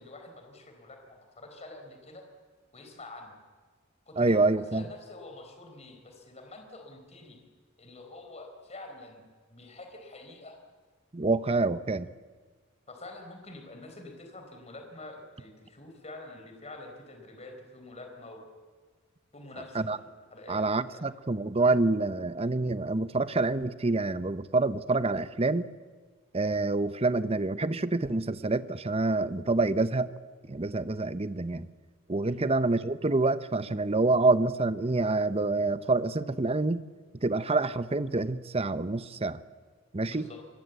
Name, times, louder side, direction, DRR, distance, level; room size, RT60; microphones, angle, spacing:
voice 1, 0.0-2.3 2.7-3.4 4.1-7.4 7.8-9.2 9.5-10.6 12.9-18.4 19.3-21.0 32.2-32.5 40.1-40.4, left 2 dB, 30° left, 4 dB, 4.3 m, -47 dB
voice 2, 4.2-4.8 11.1-12.1 19.7-20.0 20.5-25.7 26.3-30.1 30.5-31.7 32.1-36.8 37.2-39.4 39.9-40.3, right 3 dB, 30° right, 13 dB, 0.8 m, -27 dB
26.0 x 20.5 x 8.2 m, 1.4 s
head